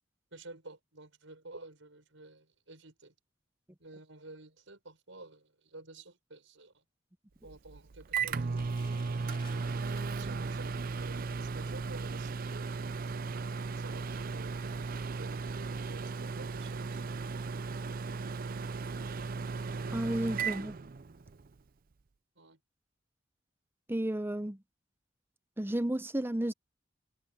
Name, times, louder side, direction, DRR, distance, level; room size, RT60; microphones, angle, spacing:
voice 1, 0.3-3.1 3.8-6.8 7.4-8.8 9.5-12.9 13.8-17.0 22.4-22.6, right 2 dB, 80° right, 5.7 m, -51 dB
Microwave oven, 7.5-21.5, right 4 dB, 50° right, 0.5 m, -36 dB
Crackle, 8.5-15.5 16.1-16.2 16.5-16.7 17.3-17.6 17.8-17.9, left 3 dB, 30° left, 3.9 m, -61 dB
voice 2, 19.9-20.8 23.9-24.6 25.6-26.5, right 1 dB, 10° right, 0.7 m, -32 dB
head